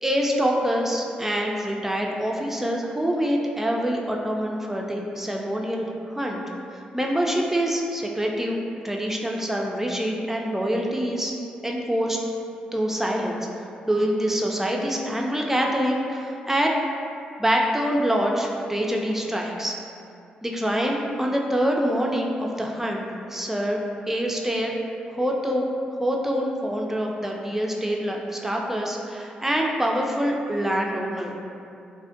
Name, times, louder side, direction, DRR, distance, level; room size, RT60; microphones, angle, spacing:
voice 1, 0.0-6.4 6.9-11.3 11.6-12.2 12.7-13.5 13.9-16.7 17.4-19.8 20.4-23.8 24.1-24.7 25.2-25.7 26.0-31.3, equal, 10° right, -1 dB, 0.3 m, -25 dB
2.4 x 2.1 x 2.4 m, 2.5 s
hypercardioid pair, 40°, 3 cm